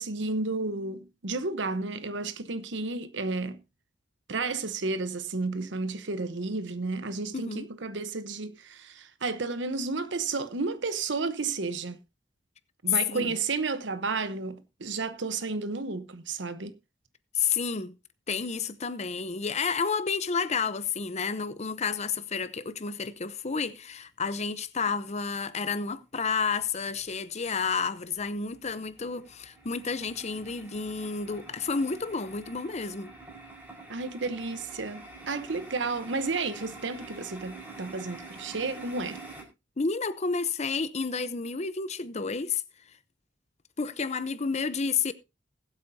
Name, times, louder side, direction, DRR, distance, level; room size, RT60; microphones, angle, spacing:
voice 1, 0.0-3.6 4.3-12.0 12.8-16.7 33.9-39.2, right 3 dB, 70° right, 1.0 m, -32 dB
voice 2, 7.3-7.7 13.1-13.3 17.3-17.9 18.3-33.1 39.8-42.6 43.8-45.1, left 5 dB, 35° left, 0.8 m, -30 dB
sound 1, 26.3-27.1 27.5-39.4, right 2 dB, 10° right, 4.8 m, -47 dB
21.0 x 8.2 x 2.8 m
head